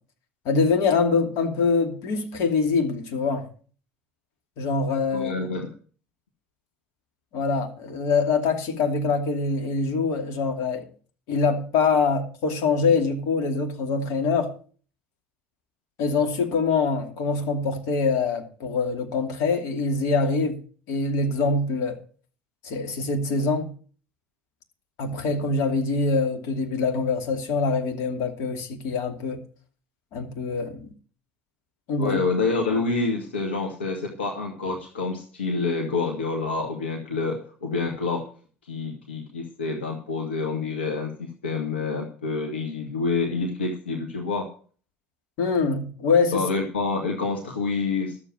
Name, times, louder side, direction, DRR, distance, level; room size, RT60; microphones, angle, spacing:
voice 1, 0.4-3.5 4.6-5.5 7.3-10.9 11.3-14.5 16.0-20.6 20.9-22.0 22.6-23.7 25.0-29.4 30.1-30.9 31.9-32.2 45.4-46.4, left 4 dB, 60° left, 2.6 m, -24 dB
voice 2, 5.1-5.7 32.0-38.3 38.7-44.5 46.3-48.2, left 4 dB, 85° left, 1.6 m, -27 dB
13.0 x 7.5 x 6.3 m
hypercardioid pair, 65°, 6 cm